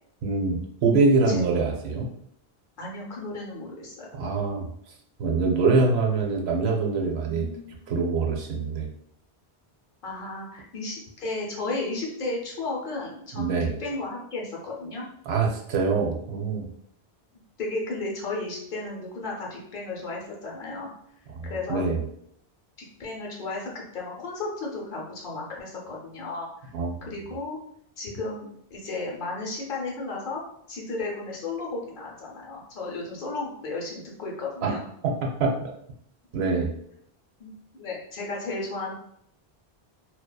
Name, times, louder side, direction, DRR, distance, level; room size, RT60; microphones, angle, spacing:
voice 1, 0.2-2.1 4.1-4.7 5.2-7.5 7.9-8.9 13.3-13.7 15.3-16.7 21.3-22.0 26.7-27.0 34.6-34.7 35.0-35.6 36.3-36.7, right 3 dB, 90° right, 0 dB, 0.9 m, -24 dB
voice 2, 2.8-4.1 7.2-7.9 10.0-15.0 17.6-20.9 21.5-21.8 23.0-26.7 27.1-27.6 28.0-30.4 30.7-34.8 37.4-38.9, left 3 dB, 60° left, -2 dB, 0.8 m, -34 dB
2.7 x 2.1 x 2.2 m, 0.70 s
omnidirectional pair, 1.0 m